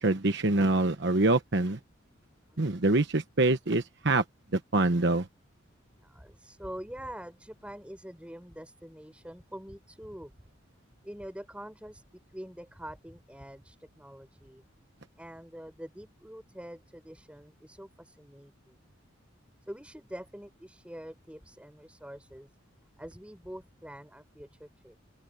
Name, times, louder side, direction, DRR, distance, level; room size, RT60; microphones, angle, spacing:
voice 1, 0.0-1.8 2.6-4.2 4.5-5.3, right 2 dB, 60° right, 1.1 m, -25 dB
voice 2, 6.0-10.3 11.0-14.6 15.2-18.9 19.7-22.5 23.0-25.0, equal, 5° right, 5.8 m, -45 dB
open air
head